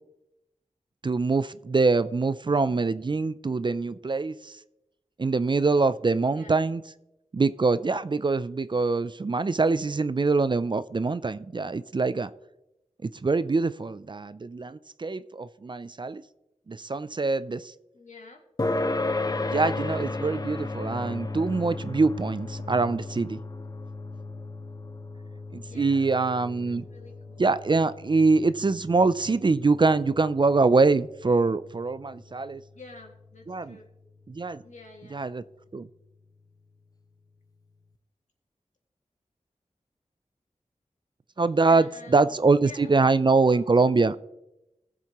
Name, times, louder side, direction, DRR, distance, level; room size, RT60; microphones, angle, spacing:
voice 1, 1.0-4.6 5.2-6.8 7.3-12.3 13.0-16.2 16.7-17.7 19.4-23.4 25.5-26.8 27.4-32.6 33.5-33.8 34.3-34.6 35.1-35.4 35.7-35.9 41.4-44.2, right 3 dB, 40° right, 15 dB, 0.4 m, -24 dB
voice 2, 6.3-6.7 17.9-18.4 25.6-27.5 32.7-33.9 34.6-35.2 41.6-43.6, left 3 dB, 70° left, 1 dB, 2.1 m, -49 dB
sound 1, 18.6-33.5, left 2 dB, 30° left, 0.6 m, -35 dB
19.5 x 7.4 x 3.0 m, 0.91 s
wide cardioid pair, 80°, 13 cm